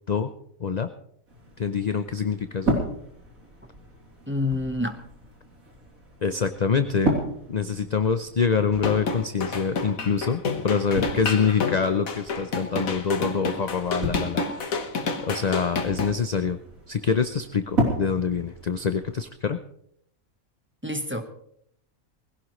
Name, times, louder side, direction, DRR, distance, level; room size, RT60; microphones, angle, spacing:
sound 1, 1.3-19.3, right 1 dB, 85° right, 3.8 m, -34 dB
voice 1, 1.6-2.7 6.2-7.2 7.5-14.8 15.2-16.6 16.9-19.6, left 6 dB, 45° left, 9 dB, 0.6 m, -25 dB
voice 2, 4.3-5.0 20.8-21.2, left 2 dB, 10° right, 5 dB, 1.1 m, -27 dB
sound 2, 8.7-16.1, left 4 dB, 80° left, 1.8 m, -29 dB
20.5 x 16.5 x 3.2 m, 0.70 s
omnidirectional pair, 1.4 m